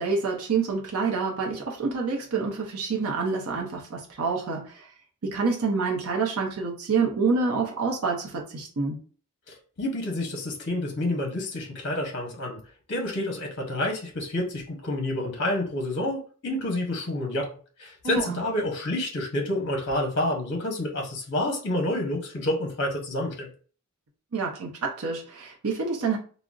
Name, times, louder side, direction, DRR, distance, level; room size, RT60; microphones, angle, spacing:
voice 1, 0.0-4.9 5.2-9.0 18.0-18.4 24.3-26.2, right 4 dB, 75° right, 0.6 m, -27 dB
voice 2, 9.8-12.6 12.9-17.5 17.8-23.5, left 1 dB, 50° left, 0.7 m, -28 dB
3.7 x 2.1 x 2.3 m
head